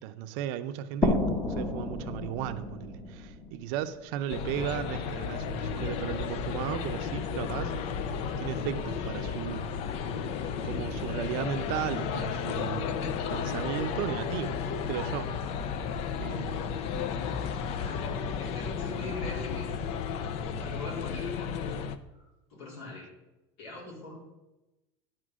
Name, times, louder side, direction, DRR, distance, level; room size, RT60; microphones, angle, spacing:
voice 1, 0.0-7.7 8.4-9.7 10.6-13.0 13.3-15.3 16.2-16.7, right 11 dB, 60° right, 0.6 m, -35 dB
sound 1, 1.0-4.5, left 2 dB, 15° left, 0.9 m, -31 dB
sound 2, 4.3-22.0, left 7 dB, 50° left, 0.6 m, -33 dB
sound 3, 4.5-20.7, left 2 dB, ahead, 0.4 m, -44 dB
voice 2, 17.7-19.7 20.5-21.8 22.1-23.1 23.6-24.2, left 2 dB, 70° left, 3.9 m, -42 dB
11.5 x 4.5 x 6.2 m
supercardioid pair, 140°, 13 cm